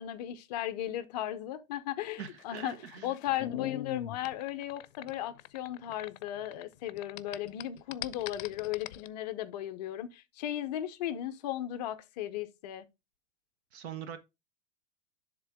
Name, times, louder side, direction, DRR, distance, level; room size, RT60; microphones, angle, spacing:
voice 1, 0.0-2.7 3.0-12.9, left 12 dB, 35° left, 0.6 m, -36 dB
voice 2, 2.2-3.1 13.7-14.2, right 8 dB, 55° right, 0.9 m, -42 dB
sound 1, 2.3-6.6 6.9-9.1, left 14 dB, 80° left, 0.5 m, -41 dB
10.5 x 3.6 x 3.4 m
supercardioid pair, 155°, 39 cm